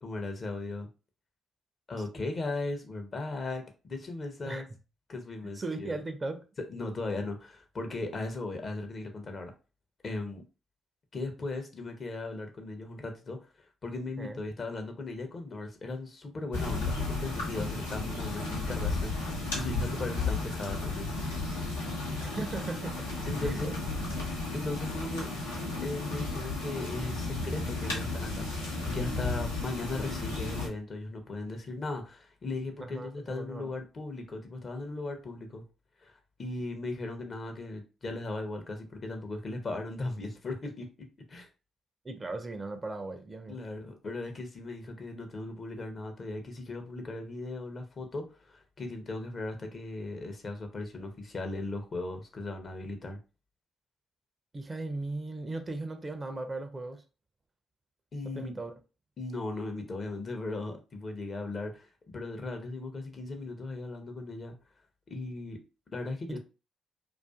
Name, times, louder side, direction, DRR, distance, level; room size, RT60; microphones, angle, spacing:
voice 1, 0.0-0.9 1.9-4.6 5.1-6.0 6.7-9.5 10.0-10.4 11.1-13.4 13.8-21.1 23.3-23.8 24.5-35.6 36.0-40.9 41.3-41.5 43.5-53.2 58.1-58.6 59.2-64.5 65.1-65.6 65.9-66.4, left 2 dB, 45° left, 0.6 m, -37 dB
voice 2, 5.5-6.4 14.2-14.4 22.2-23.1 23.4-23.7 32.8-33.7 42.0-43.6 54.5-57.0 58.2-58.7 66.3-66.4, right 2 dB, 30° right, 0.4 m, -37 dB
sound 1, 16.5-30.7, left 2 dB, 90° left, 0.6 m, -33 dB
2.5 x 2.4 x 2.3 m
hypercardioid pair, 45°, 0 cm